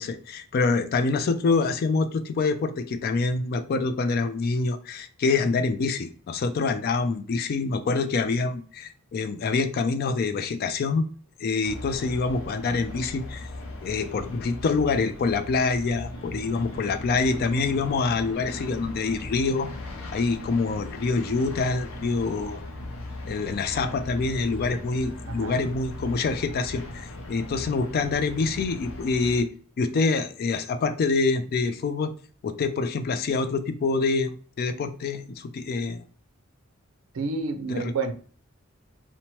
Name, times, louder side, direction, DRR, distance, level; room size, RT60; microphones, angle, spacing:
voice 1, 0.0-11.1 11.4-13.5 13.8-19.7 20.1-22.6 23.3-29.5 29.8-32.1 32.4-36.0 37.7-37.9, left 4 dB, 50° left, 10 dB, 0.3 m, -26 dB
sound 1, 11.6-29.4, left 1 dB, 85° left, 0.6 m, -38 dB
voice 2, 25.3-25.6 37.1-38.1, right 4 dB, 85° right, 7 dB, 0.5 m, -29 dB
2.8 x 2.1 x 3.0 m, 0.43 s
head